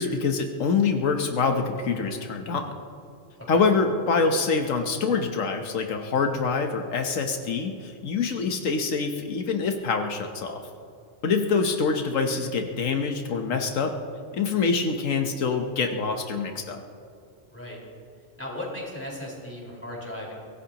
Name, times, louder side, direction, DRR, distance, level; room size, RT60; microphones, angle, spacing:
voice 1, 0.0-2.7 3.5-10.6 11.2-13.9 14.3-16.8, left 4 dB, 85° left, 4 dB, 1.4 m, -25 dB
voice 2, 18.4-20.4, left 1 dB, 10° left, -4 dB, 4.5 m, -36 dB
24.0 x 17.0 x 2.9 m, 2.5 s
omnidirectional pair, 1.3 m